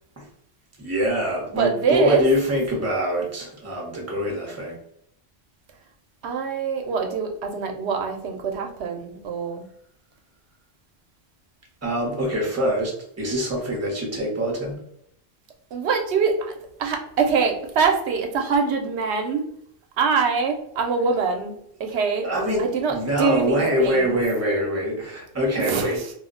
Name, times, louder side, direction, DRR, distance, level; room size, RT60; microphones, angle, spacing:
voice 1, 0.8-4.8 11.8-12.9 13.2-14.8 22.2-26.0, equal, 15° right, -2 dB, 0.7 m, -24 dB
voice 2, 1.6-2.2 6.2-9.6 15.7-16.5 16.8-19.4 20.0-22.3 22.6-24.2 25.6-26.1, right 5 dB, 85° right, 4 dB, 0.9 m, -24 dB
2.3 x 2.1 x 3.6 m, 0.69 s
omnidirectional pair, 1.1 m